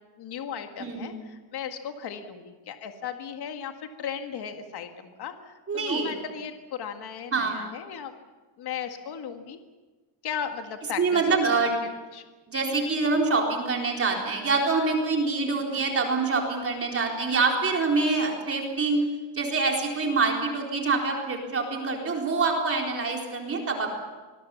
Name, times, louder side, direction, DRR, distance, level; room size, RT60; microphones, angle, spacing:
voice 1, 0.2-8.1 8.6-9.6 10.2-11.7 12.1-12.2, left 7 dB, 50° left, 5 dB, 2.0 m, -36 dB
voice 2, 0.8-1.2 5.7-6.1 7.3-7.7 11.0-11.8 12.5-19.0 19.3-24.0, right 4 dB, 30° right, 1 dB, 4.0 m, -25 dB
25.5 x 22.0 x 7.2 m, 1.3 s
cardioid pair, 165°, 48 cm